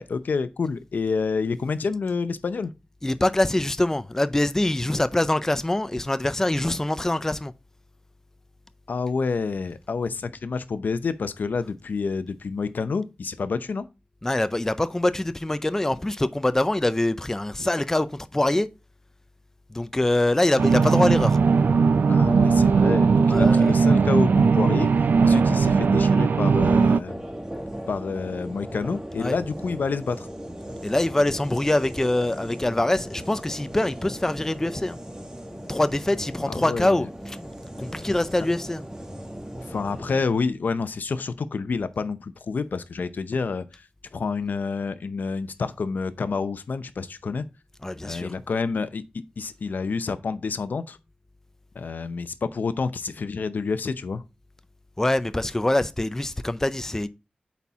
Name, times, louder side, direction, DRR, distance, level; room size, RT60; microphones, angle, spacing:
voice 1, 0.0-2.7 8.9-13.9 22.1-24.9 25.2-27.2 27.9-30.3 36.5-37.1 39.7-43.9 44.1-47.4 48.0-51.0 51.7-54.2, left 4 dB, 85° left, 0.6 m, -28 dB
voice 2, 3.0-7.5 14.2-18.7 19.7-21.4 23.3-23.7 29.2-29.4 30.8-35.0 35.7-37.4 37.8-38.8 47.8-48.3 55.0-57.1, left 1 dB, 15° left, 0.4 m, -24 dB
sound 1, 20.6-27.0, right 5 dB, 90° right, 0.4 m, -18 dB
sound 2, 27.0-40.2, right 1 dB, 20° right, 1.3 m, -38 dB
8.2 x 4.3 x 3.5 m
wide cardioid pair, 105°, 3 cm